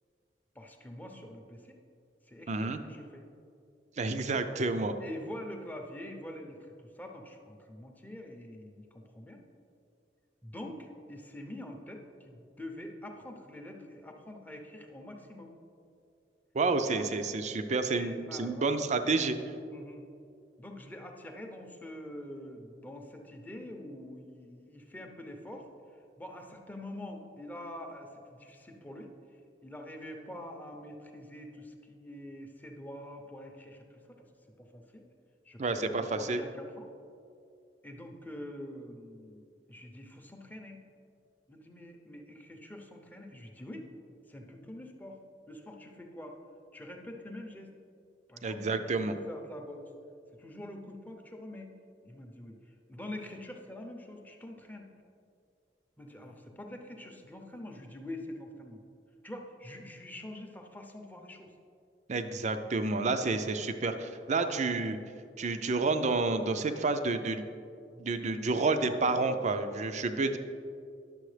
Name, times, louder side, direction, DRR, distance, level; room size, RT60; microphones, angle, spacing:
voice 1, 0.5-1.8 2.3-3.3 5.0-9.4 10.4-15.5 16.9-17.1 17.9-18.8 19.7-20.1 20.6-25.7 26.2-29.1 29.6-34.3 34.6-35.1 35.4-36.9 37.8-40.8 41.5-43.9 44.3-45.2 45.5-46.4 46.7-47.7 48.3-49.9 50.4-51.7 52.0-54.9 56.0-58.8 59.2-61.5 64.3-64.6 67.9-68.1 69.6-69.7, left 1 dB, 10° left, 3 dB, 0.7 m, -45 dB
voice 2, 2.5-2.8 4.0-4.9 16.5-19.4 35.6-36.4 48.4-49.1 62.1-65.0 65.4-67.4 68.0-70.4, right 3 dB, 40° right, 9 dB, 0.5 m, -29 dB
10.5 x 6.9 x 3.3 m, 2.5 s
head